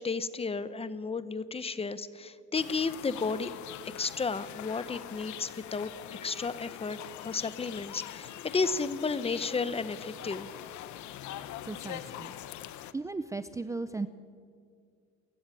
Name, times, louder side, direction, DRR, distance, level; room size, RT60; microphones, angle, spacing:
voice 1, 0.0-3.5 4.0-5.9 6.2-10.5, left 4 dB, 20° left, 14 dB, 0.8 m, -33 dB
sound 1, 2.5-12.9, left 12 dB, 80° left, 1.1 m, -43 dB
voice 2, 11.6-12.3 12.9-14.1, right 3 dB, 10° right, 12 dB, 0.5 m, -36 dB
28.5 x 16.0 x 9.1 m, 2.3 s
cardioid pair, 160°, 29 cm